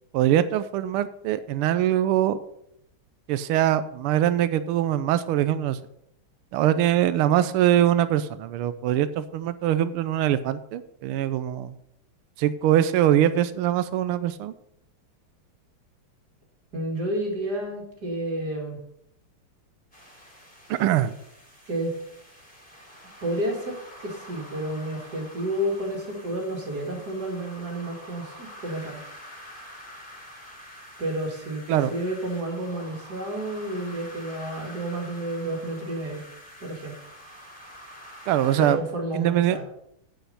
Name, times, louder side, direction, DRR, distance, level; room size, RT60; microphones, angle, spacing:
voice 1, 0.1-2.4 3.3-5.8 6.5-11.8 12.4-14.5 20.7-21.2 31.7-31.9 38.3-38.8 39.1-39.6, right 11 dB, 85° right, 13 dB, 1.5 m, -23 dB
voice 2, 16.7-18.8 21.7-21.9 23.2-29.0 31.0-36.3 36.6-36.9 38.6-39.6, right 1 dB, 45° right, 0 dB, 2.7 m, -30 dB
sound 1, 19.9-38.7, equal, 5° left, 2.8 m, -46 dB
9.1 x 9.1 x 5.4 m, 0.75 s
omnidirectional pair, 2.4 m